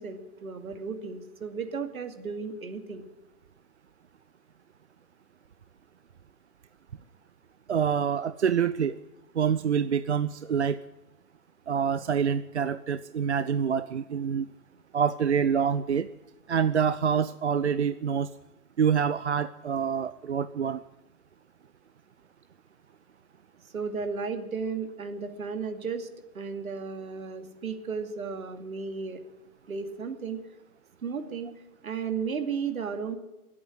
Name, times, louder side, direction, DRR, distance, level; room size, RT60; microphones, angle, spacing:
voice 1, 0.0-3.1 23.7-26.1 26.3-29.2 29.7-30.4 31.0-31.5 31.8-33.2, right 5 dB, 70° right, 7 dB, 2.6 m, -34 dB
voice 2, 7.7-9.0 9.4-10.8 11.7-14.5 14.9-16.1 16.5-18.3 18.8-20.8, right 7 dB, 50° right, 14 dB, 0.5 m, -26 dB
20.0 x 8.6 x 7.7 m, 1.0 s
hypercardioid pair, 165°, 44 cm